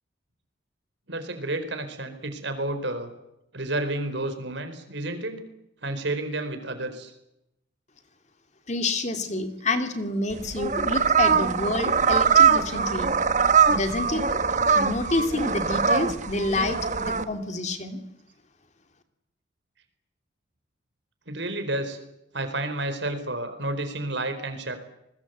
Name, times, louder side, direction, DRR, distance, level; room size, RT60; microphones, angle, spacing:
voice 1, 1.1-3.1 3.5-5.4 5.8-7.1 21.3-22.0 22.3-24.7, right 2 dB, 65° right, 9 dB, 4.4 m, -30 dB
voice 2, 8.7-13.1 13.7-14.4 14.7-18.0, left 2 dB, 35° left, 7 dB, 2.5 m, -28 dB
sound 1, 10.3-17.2, right 6 dB, 40° right, 1.2 m, -22 dB
29.0 x 21.0 x 8.1 m, 0.83 s
head